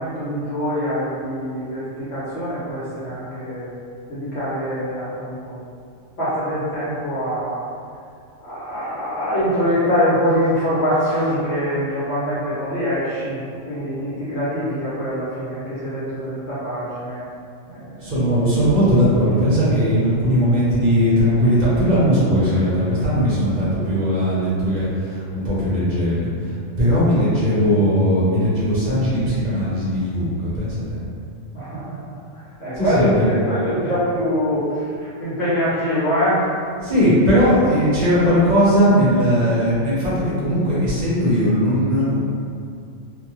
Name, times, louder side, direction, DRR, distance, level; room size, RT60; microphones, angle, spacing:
voice 1, 0.0-3.7 4.1-5.6 6.2-7.6 8.4-13.4 13.7-17.3 17.7-18.1 31.5-36.4, equal, 60° left, -12 dB, 1.0 m, -24 dB
voice 2, 18.0-31.0 32.7-33.3 36.8-42.2, equal, 40° right, -9 dB, 0.8 m, -18 dB
2.5 x 2.2 x 3.0 m, 2.4 s
omnidirectional pair, 1.3 m